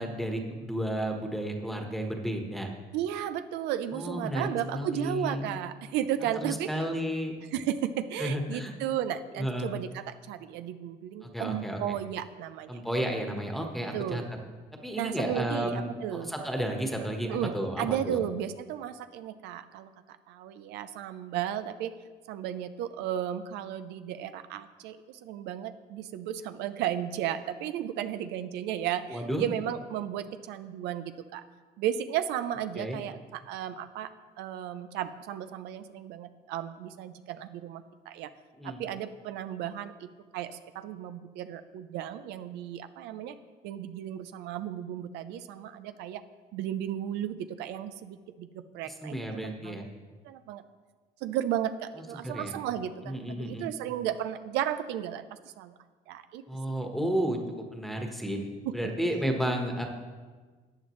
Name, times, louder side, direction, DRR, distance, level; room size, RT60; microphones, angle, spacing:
voice 1, 0.0-2.7 3.9-5.5 6.4-7.4 8.2-8.7 9.4-9.7 11.2-11.8 12.7-14.2 14.8-18.2 29.1-29.5 32.7-33.0 38.6-38.8 48.8-49.9 52.0-52.6 53.0-53.7 56.5-57.4 57.7-58.4 58.7-59.9, equal, ahead, 2 dB, 1.3 m, -32 dB
voice 2, 2.9-6.7 7.5-12.8 13.9-14.2 14.9-16.3 17.3-19.9 20.3-22.0 22.3-31.4 31.8-34.1 34.4-38.3 38.6-43.4 43.6-46.2 46.5-49.8 50.2-50.6 51.2-55.2 55.6-55.7 56.1-56.4 58.7-58.8, right 10 dB, 90° right, 11 dB, 0.5 m, -34 dB
14.0 x 9.1 x 3.2 m, 1.4 s
cardioid pair, 110°, 17 cm